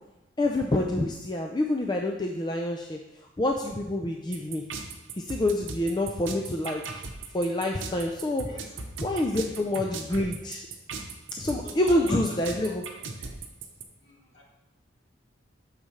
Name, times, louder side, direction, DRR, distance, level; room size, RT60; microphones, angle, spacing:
voice 1, 0.4-3.0 3.4-4.6 5.3-6.8 7.3-8.5 9.0-10.6 11.4-12.8, left 1 dB, 20° left, 2 dB, 0.4 m, -27 dB
sound 1, 4.3-13.8, right 4 dB, 75° right, 0.8 m, -37 dB
voice 2, 9.3-9.9 11.6-13.3 14.0-14.4, left 1 dB, 55° left, -5 dB, 2.5 m, -45 dB
9.1 x 6.5 x 3.2 m, 0.96 s
head